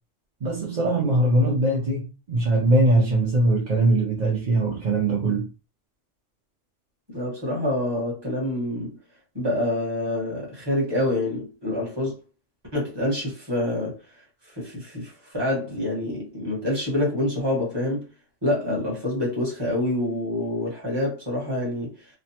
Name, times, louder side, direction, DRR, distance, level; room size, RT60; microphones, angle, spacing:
voice 1, 0.4-5.5, right 2 dB, 50° right, 0.6 m, -21 dB
voice 2, 7.1-9.0 9.3-12.2 12.7-14.0 14.4-18.1 18.4-22.1, left 1 dB, 20° right, 1.2 m, -27 dB
3.2 x 2.0 x 2.8 m
omnidirectional pair, 1.3 m